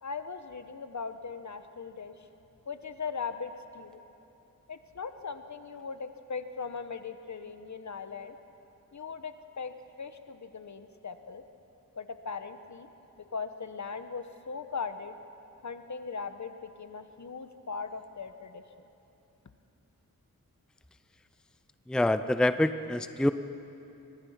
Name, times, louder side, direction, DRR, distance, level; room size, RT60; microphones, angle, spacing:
voice 1, 0.0-2.3 2.7-4.0 4.7-8.4 8.9-9.7 10.0-11.4 12.0-12.9 13.2-15.2 15.6-18.6, left 5 dB, 55° left, 9 dB, 1.2 m, -39 dB
voice 2, 21.9-23.3, left 1 dB, ahead, 11 dB, 0.6 m, -26 dB
25.0 x 22.0 x 5.8 m, 2.9 s
wide cardioid pair, 70°, 34 cm